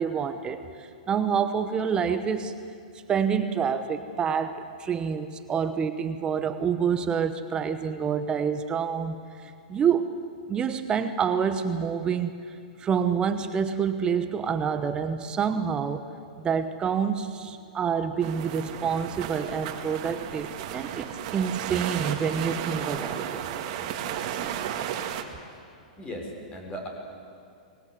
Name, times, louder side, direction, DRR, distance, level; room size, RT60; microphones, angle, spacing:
voice 1, 0.0-2.6 3.1-10.1 10.5-12.4 12.8-16.1 16.4-23.4, right 7 dB, 20° right, 9 dB, 1.0 m, -27 dB
sound 1, 18.2-25.2, right 10 dB, 50° right, 2.0 m, -34 dB
voice 2, 26.0-26.9, equal, 20° left, 2 dB, 4.8 m, -37 dB
24.0 x 20.0 x 7.9 m, 2.4 s
hypercardioid pair, 135°, 4 cm